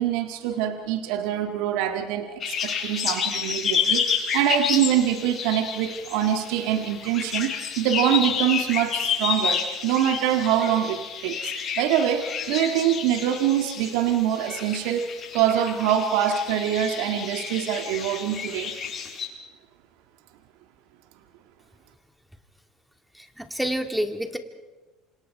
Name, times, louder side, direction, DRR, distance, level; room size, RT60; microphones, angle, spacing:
voice 1, 0.0-15.1 15.3-18.7, right 10 dB, 70° right, 6 dB, 1.7 m, -24 dB
sound 1, 2.4-19.3, left 7 dB, 45° left, 7.2 m, -30 dB
voice 2, 23.1-24.4, equal, 5° right, 6 dB, 2.6 m, -28 dB
28.0 x 26.5 x 4.7 m, 1.2 s
hypercardioid pair, 70°, 0 cm